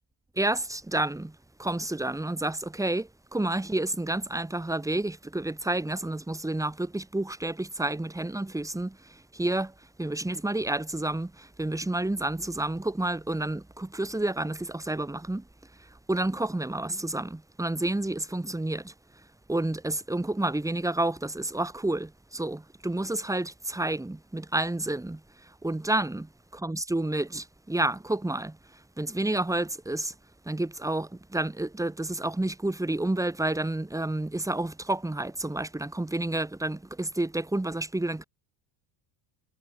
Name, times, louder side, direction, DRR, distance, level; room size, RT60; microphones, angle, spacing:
voice 1, 0.4-15.4 15.8-18.9 19.5-26.3 26.6-30.1 30.4-38.2, right 2 dB, 5° right, 3.2 m, -30 dB
cardioid pair, 115°, 48 cm